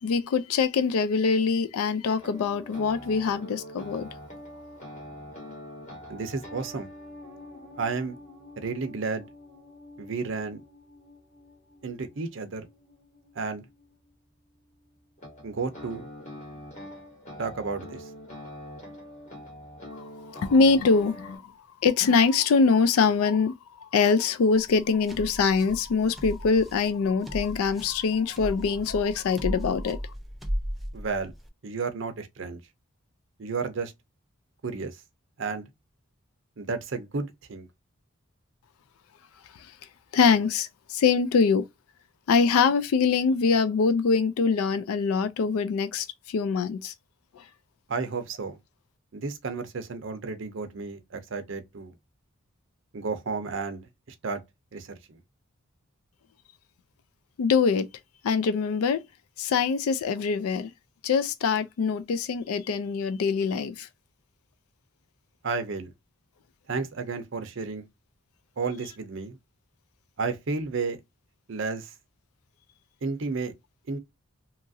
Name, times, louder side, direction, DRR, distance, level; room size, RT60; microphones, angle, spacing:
voice 1, 0.0-4.1 19.9-21.5 21.8-30.1 39.5-39.8 40.1-41.7 42.3-46.9 47.3-47.5 57.4-57.9 58.2-59.0 59.4-60.7 61.0-63.9, left 5 dB, 85° left, 0.3 m, -24 dB
sound 1, 2.2-14.1 15.2-21.4, left 1 dB, 35° left, 1.1 m, -45 dB
voice 2, 6.1-6.9 7.8-8.2 8.6-9.3 10.0-10.6 11.8-12.7 13.4-13.6 15.4-16.1 17.4-18.1 30.9-31.3 31.6-32.6 33.4-33.9 34.6-35.0 35.4-35.6 36.6-37.7 47.9-48.6 49.1-51.9 52.9-53.9 54.2-54.4 54.7-55.2 65.4-65.9 66.7-67.8 68.6-69.4 70.2-71.0 71.5-71.9 73.0-73.5 73.9-74.0, right 4 dB, 60° right, 0.5 m, -32 dB
sound 2, 24.5-31.5, equal, ahead, 0.3 m, -36 dB
2.9 x 2.4 x 2.6 m
head